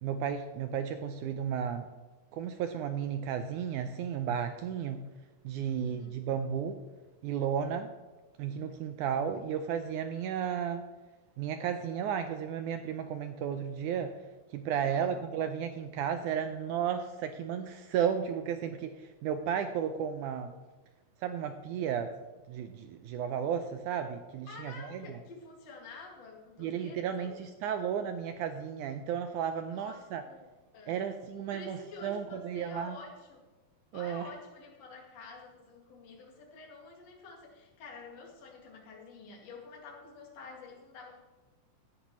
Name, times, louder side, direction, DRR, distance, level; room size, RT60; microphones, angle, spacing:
voice 1, 0.0-1.9 2.3-5.0 5.4-6.8 7.2-7.9 8.4-10.8 11.4-14.2 14.5-20.5 21.2-22.1 22.5-25.0 26.6-30.2 30.9-31.8 32.0-33.0 33.9-34.3, right 8 dB, 80° right, 8 dB, 1.8 m, -33 dB
voice 2, 5.6-6.1 14.7-15.2 24.4-27.5 29.7-31.1 31.5-33.4 33.9-41.2, left 4 dB, 50° left, -2 dB, 3.1 m, -49 dB
16.5 x 11.5 x 3.1 m, 1.2 s
omnidirectional pair, 4.2 m